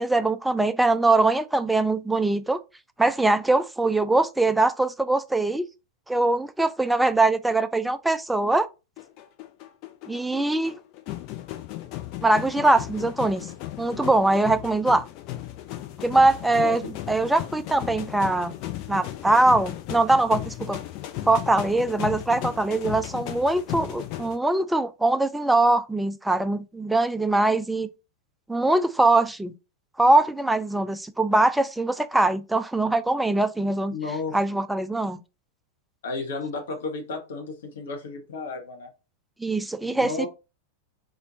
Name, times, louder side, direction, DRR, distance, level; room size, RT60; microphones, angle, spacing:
voice 1, 0.0-2.6 3.0-5.7 6.1-8.7 10.1-10.8 12.2-13.5 13.8-15.1 16.0-18.6 18.9-20.8 21.2-27.9 28.5-29.5 30.0-34.0 34.3-35.2 39.4-40.1, right 2 dB, 5° right, 0.3 m, -22 dB
sound 1, 9.0-24.4, left 14 dB, 40° left, 0.6 m, -36 dB
voice 2, 33.9-34.4 36.0-38.9 39.8-40.3, left 4 dB, 60° left, 1.0 m, -33 dB
4.1 x 3.0 x 2.6 m
figure-of-eight pair, 90°, 0 cm